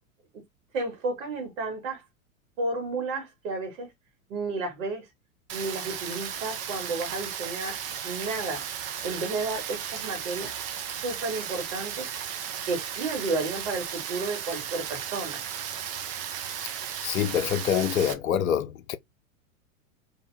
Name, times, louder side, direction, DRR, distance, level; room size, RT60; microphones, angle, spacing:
voice 1, 0.7-2.0 2.6-3.9 4.3-5.0 5.5-7.8 8.0-8.6 9.0-10.5 11.0-12.1 12.7-15.4, right 3 dB, 60° right, 2.0 m, -32 dB
Rain, 5.5-18.1, right 9 dB, 35° right, 0.7 m, -35 dB
voice 2, 17.0-19.0, left 9 dB, 75° left, 0.7 m, -26 dB
2.9 x 2.8 x 3.3 m
figure-of-eight pair, 95°, 42 cm